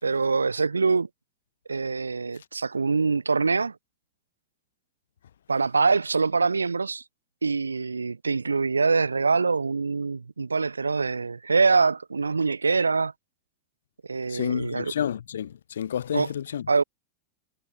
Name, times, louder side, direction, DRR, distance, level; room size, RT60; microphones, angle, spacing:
voice 1, 0.0-1.1 1.7-3.8 5.5-7.0 7.4-13.1 14.1-14.9 16.1-16.3 16.7-16.8, right 4 dB, 75° right, 2.4 m, -24 dB
voice 2, 14.3-16.7, left 9 dB, 65° left, 3.8 m, -30 dB
figure-of-eight pair, 90°, 0 cm